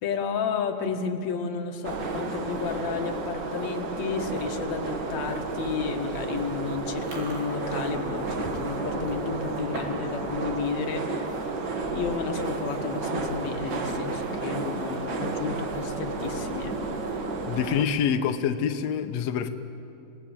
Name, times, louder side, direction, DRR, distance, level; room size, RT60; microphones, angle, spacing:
voice 1, 0.0-11.4 11.9-17.0, left 6 dB, 55° left, 4 dB, 2.4 m, -32 dB
sound 1, 1.8-17.9, right 3 dB, 65° right, 1.1 m, -32 dB
Chewing mastication, 6.9-10.1 10.4-10.7 11.2-11.4 12.2-12.3 12.5-12.8 13.2-13.3 14.8-15.4, right 2 dB, 80° right, 5.7 m, -44 dB
voice 2, 17.5-19.5, left 8 dB, 90° left, 7 dB, 1.4 m, -26 dB
28.0 x 18.0 x 8.9 m, 2.7 s
omnidirectional pair, 4.3 m